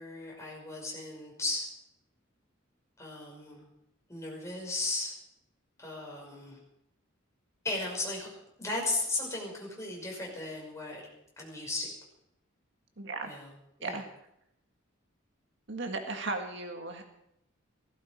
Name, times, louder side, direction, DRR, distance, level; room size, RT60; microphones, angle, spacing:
voice 1, 0.0-1.7 3.0-3.7 4.1-5.1 5.8-6.6 7.6-8.3 8.6-11.0 11.4-11.9 13.2-13.5 13.8-14.0, left 2 dB, 15° left, -3 dB, 5.7 m, -36 dB
voice 2, 13.0-13.3 13.8-14.0 15.7-17.0, right 3 dB, 60° right, 4 dB, 1.7 m, -36 dB
17.5 x 15.5 x 5.1 m, 0.79 s
head